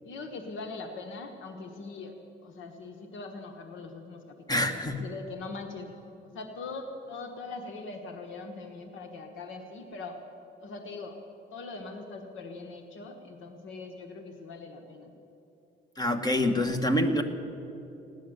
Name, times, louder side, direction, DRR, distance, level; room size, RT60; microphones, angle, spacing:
voice 1, 0.0-5.9 6.3-10.2 10.6-11.2 11.5-15.2, left 3 dB, 80° left, 5 dB, 1.3 m, -41 dB
voice 2, 4.5-5.0 16.0-17.2, left 1 dB, 20° left, 7 dB, 1.4 m, -26 dB
17.5 x 10.5 x 7.9 m, 2.9 s
cardioid pair, 90°, 20 cm